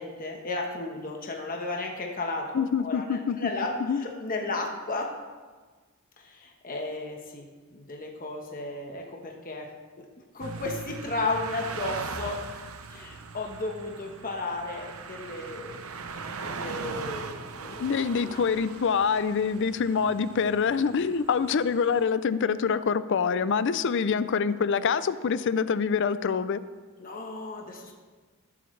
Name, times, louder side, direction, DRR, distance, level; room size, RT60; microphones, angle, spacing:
voice 1, 0.0-5.1 6.2-9.7 10.0-12.4 12.9-15.8 16.4-17.8 18.2-18.4 24.3-24.4 27.0-27.9, left 2 dB, 40° left, 1 dB, 1.2 m, -34 dB
voice 2, 2.5-3.5 3.9-4.0 17.8-26.6, left 6 dB, 55° left, 14 dB, 0.4 m, -25 dB
sound 1, 10.4-22.0, right 4 dB, 70° right, 0.7 m, -40 dB
19.5 x 7.8 x 3.3 m, 1.4 s
head